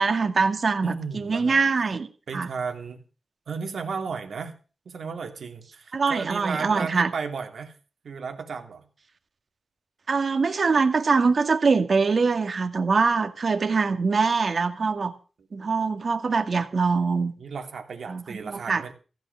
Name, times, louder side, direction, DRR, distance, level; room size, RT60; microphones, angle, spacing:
voice 1, 0.0-2.1 2.3-2.5 5.9-7.1 10.1-15.1 15.5-17.3 18.1-18.9, right 4 dB, 60° right, 8 dB, 2.1 m, -23 dB
voice 2, 0.8-1.6 2.3-3.0 3.5-4.5 4.8-7.7 8.0-8.8 17.4-18.9, right 5 dB, 80° right, 4 dB, 3.0 m, -34 dB
15.0 x 6.2 x 9.5 m, 0.37 s
cardioid pair, 60°, 0 cm